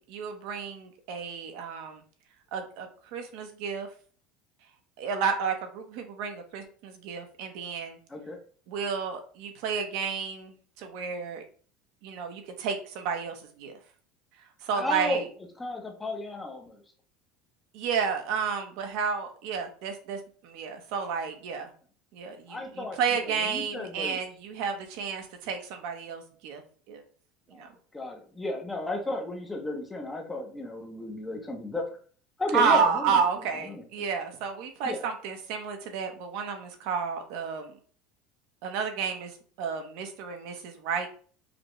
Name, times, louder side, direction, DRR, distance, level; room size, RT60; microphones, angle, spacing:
voice 1, 0.1-2.0 2.5-3.9 5.0-8.0 8.7-11.4 12.0-13.8 14.6-15.3 17.7-21.7 22.1-26.6 26.9-27.0 27.5-27.7 32.5-37.7 38.6-41.1, right 6 dB, 65° right, 5 dB, 0.8 m, -31 dB
voice 2, 14.8-15.2 15.6-16.8 22.5-23.0 23.2-24.2 27.5-31.9 32.4-33.2 33.6-33.8 34.8-35.0, left 2 dB, 10° left, 2 dB, 0.7 m, -34 dB
5.0 x 2.2 x 3.0 m, 0.44 s
cardioid pair, 155°, 0 cm